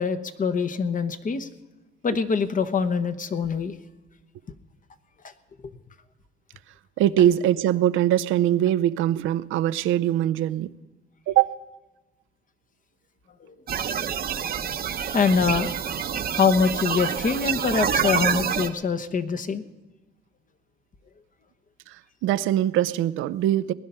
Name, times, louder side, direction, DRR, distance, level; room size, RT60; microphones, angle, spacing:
voice 1, 0.0-1.5 2.0-3.7 13.4-13.6 15.1-15.7 16.3-19.6, left 5 dB, 40° left, 11 dB, 1.0 m, -24 dB
voice 2, 7.0-10.8 11.3-11.6 21.9-23.7, right 12 dB, 85° right, 12 dB, 0.5 m, -22 dB
sound 1, 13.7-18.7, right 7 dB, 50° right, 0.8 m, -27 dB
19.5 x 10.5 x 5.6 m, 1.1 s
cardioid pair, 90°, 20 cm